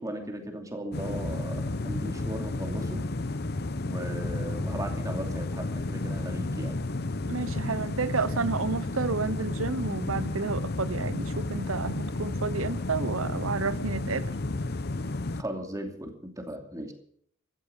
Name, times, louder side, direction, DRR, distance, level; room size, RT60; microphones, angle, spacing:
voice 1, 0.0-3.1 3.9-6.8 15.4-16.9, right 1 dB, 15° right, 2.7 m, -37 dB
sound 1, 0.9-15.4, left 2 dB, 50° left, 0.8 m, -32 dB
voice 2, 7.3-14.3, right 4 dB, 80° right, 0.9 m, -31 dB
15.5 x 12.5 x 6.9 m
head